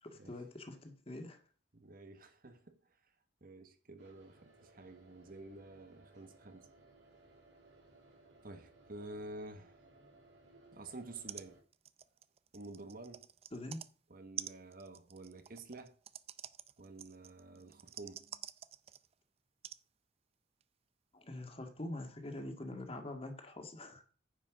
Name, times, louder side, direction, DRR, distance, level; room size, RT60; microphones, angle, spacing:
voice 1, 0.0-1.4 13.5-13.8 21.1-24.0, left 1 dB, 35° left, 1.9 m, -44 dB
voice 2, 1.7-2.8 3.4-6.7 8.4-9.8 10.7-11.6 12.5-13.3 13.7-13.8 14.1-15.9 16.8-18.5, right 2 dB, 50° right, 1.3 m, -50 dB
sound 1, 4.0-11.6, right 2 dB, 85° right, 5.1 m, -63 dB
sound 2, 11.0-11.1 11.3-11.5 11.7-13.9 14.4-19.1 19.6-19.8 20.6-20.7, right 10 dB, 35° right, 0.5 m, -48 dB
9.8 x 5.9 x 6.1 m
head